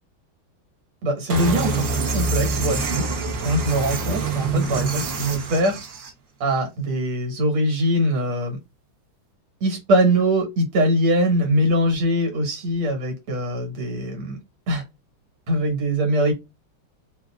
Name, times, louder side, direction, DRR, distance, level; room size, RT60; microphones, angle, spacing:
voice 1, 1.0-3.0 3.4-5.8 6.4-8.6 9.6-14.4 14.7-14.8 15.5-16.3, equal, 85° right, 4 dB, 2.3 m, -22 dB
sound 1, 1.3-6.1, right 3 dB, 65° right, 1.6 m, -25 dB
4.5 x 2.7 x 2.3 m, 0.22 s
omnidirectional pair, 2.3 m